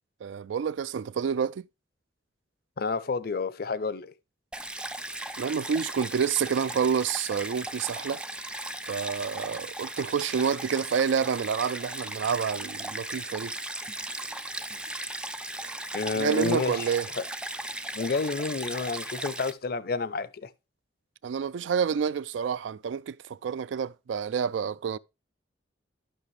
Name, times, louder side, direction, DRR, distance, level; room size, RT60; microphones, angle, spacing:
voice 1, 0.2-1.5 5.4-8.2 8.9-13.5 15.6-15.7 16.2-17.1 21.2-25.0, right 7 dB, 80° right, 0.3 m, -28 dB
voice 2, 2.8-4.1 15.9-16.8 17.2-17.3 18.0-20.5, left 4 dB, 55° left, 0.5 m, -30 dB
Stream, 4.5-19.5, right 1 dB, 5° right, 0.4 m, -37 dB
12.0 x 5.9 x 3.2 m
head